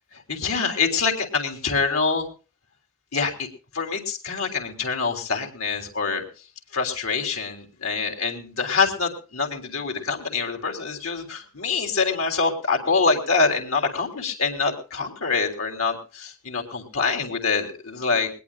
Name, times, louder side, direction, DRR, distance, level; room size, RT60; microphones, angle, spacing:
voice 1, 0.3-2.3 3.1-3.5 3.7-6.2 6.7-18.3, left 4 dB, 90° left, 4 dB, 3.5 m, -25 dB
20.5 x 20.5 x 2.4 m, 0.35 s
head